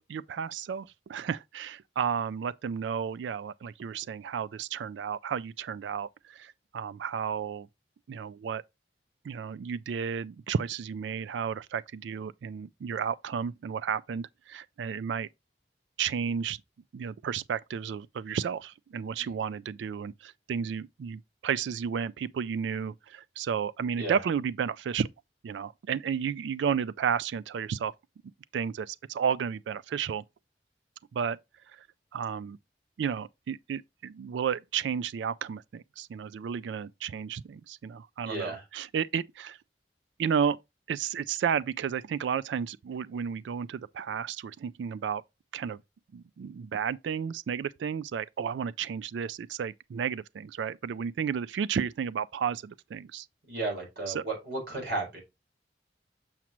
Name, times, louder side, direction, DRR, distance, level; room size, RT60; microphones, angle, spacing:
voice 1, 0.0-7.7 8.1-8.6 9.2-15.3 16.0-16.6 16.9-25.1 25.4-27.9 28.5-30.2 31.1-31.4 31.7-31.9 32.1-32.6 33.0-39.6 40.2-40.6 40.9-45.2 45.5-45.8 46.1-53.3 54.1-54.2, right 7 dB, 90° right, 0.3 m, -32 dB
voice 2, 38.2-38.6 53.5-55.2, right 2 dB, 65° right, 4.4 m, -34 dB
7.2 x 6.0 x 3.0 m
head